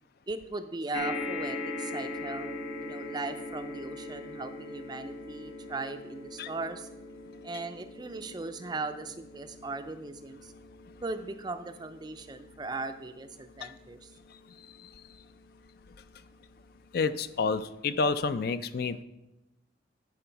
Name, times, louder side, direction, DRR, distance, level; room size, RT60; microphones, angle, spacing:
voice 1, 0.3-6.9 7.4-10.5 11.0-14.1, right 3 dB, 20° right, 9 dB, 0.4 m, -38 dB
sound 1, 0.9-15.5 16.2-16.3 16.6-16.7, left 2 dB, 90° left, 0.9 m, -41 dB
voice 2, 16.9-19.0, left 4 dB, 50° left, 13 dB, 0.4 m, -29 dB
11.0 x 4.7 x 4.5 m, 0.92 s
head